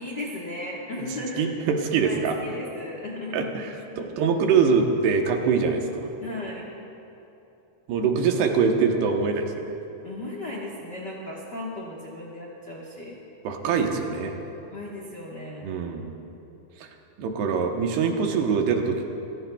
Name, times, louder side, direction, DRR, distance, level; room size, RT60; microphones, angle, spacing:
voice 1, 0.0-1.5 2.0-3.5 3.9-4.3 6.2-6.6 10.0-13.2 14.7-15.8, left 2 dB, 80° left, -4 dB, 0.9 m, -36 dB
voice 2, 1.4-2.4 3.3-3.7 4.0-6.1 7.9-9.7 13.4-14.4 15.6-16.1 16.8-16.9 17.2-19.1, right 5 dB, 85° right, 3 dB, 3.2 m, -24 dB
28.0 x 16.0 x 2.3 m, 3.0 s
omnidirectional pair, 4.5 m